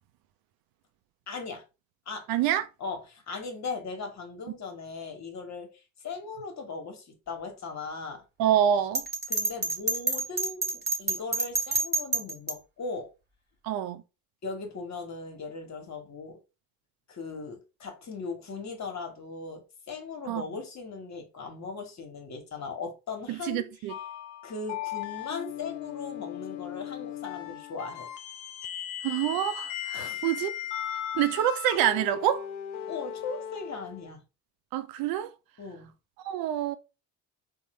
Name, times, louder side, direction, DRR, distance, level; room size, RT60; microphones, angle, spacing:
voice 1, 1.3-1.6 2.1-2.3 2.8-5.7 6.0-8.2 9.3-10.6 11.0-13.1 14.4-16.4 17.1-23.6 24.4-28.1 29.9-30.2 32.9-34.2 35.6-35.9, left 4 dB, 40° left, 1.2 m, -38 dB
voice 2, 2.3-2.6 8.4-9.0 13.6-14.0 20.3-20.4 23.3-23.9 29.0-30.5 31.1-32.5 34.7-35.3 36.2-36.8, right 11 dB, 60° right, 0.5 m, -26 dB
Bell, 8.9-12.5, right 3 dB, 25° right, 1.3 m, -28 dB
sound 1, 23.9-34.1, left 10 dB, 70° left, 0.6 m, -37 dB
3.7 x 2.2 x 3.1 m
hypercardioid pair, 60°, 42 cm